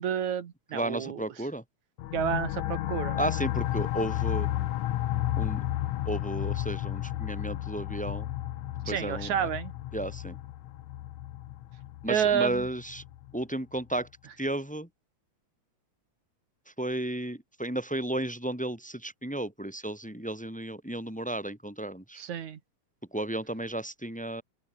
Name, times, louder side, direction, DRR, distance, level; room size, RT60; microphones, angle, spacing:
voice 1, 0.0-1.2 2.1-3.2 8.8-9.7 12.1-12.7 22.2-22.6, right 8 dB, 75° right, 3.2 m, -29 dB
voice 2, 0.7-1.6 3.2-4.5 5.3-5.6 6.0-8.3 8.9-9.5 9.9-10.4 12.0-13.0 13.3-14.1 14.4-14.9 16.8-22.2 23.1-24.4, right 1 dB, ahead, 3.4 m, -33 dB
sound 1, 2.0-13.3, left 14 dB, 75° left, 2.2 m, -32 dB
open air
omnidirectional pair, 3.4 m